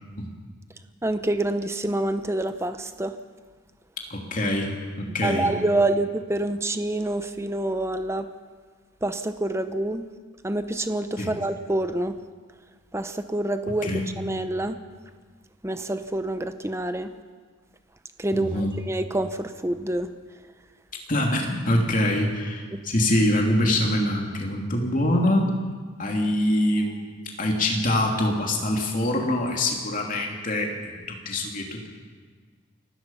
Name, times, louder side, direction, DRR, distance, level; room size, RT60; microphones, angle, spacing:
voice 1, 1.0-3.1 5.2-8.3 9.0-10.0 10.4-12.1 12.9-13.9 14.2-14.7 15.6-17.1 18.2-18.6 18.9-20.1 22.7-22.8, right 1 dB, 15° right, 9 dB, 0.8 m, -27 dB
voice 2, 4.1-4.7 5.0-5.5 11.2-11.4 13.8-14.1 18.3-18.8 21.1-25.5 26.0-27.1 27.4-31.9, left 1 dB, 40° left, 1 dB, 3.0 m, -24 dB
28.5 x 16.5 x 5.8 m, 1.5 s
head